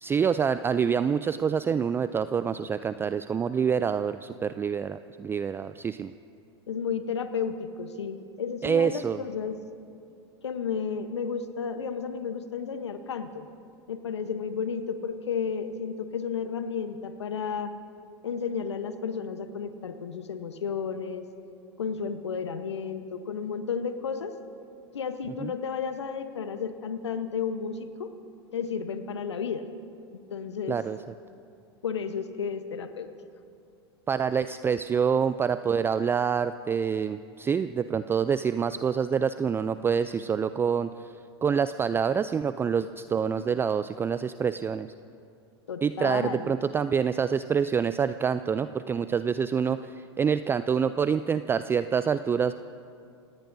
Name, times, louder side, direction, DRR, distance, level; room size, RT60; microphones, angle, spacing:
voice 1, 0.0-6.1 8.6-9.2 25.4-25.5 30.7-31.0 34.1-41.1 41.4-44.9 45.8-52.5, right 7 dB, 15° right, 12 dB, 0.3 m, -26 dB
voice 2, 6.7-9.6 10.4-13.5 13.9-17.7 18.2-21.2 21.8-24.3 24.9-28.1 28.5-29.7 30.1-30.8 31.8-33.1 43.3-43.5 45.7-46.6, left 6 dB, 85° left, 9 dB, 1.0 m, -32 dB
28.5 x 18.0 x 2.7 m, 2.4 s
hypercardioid pair, 95°, 14 cm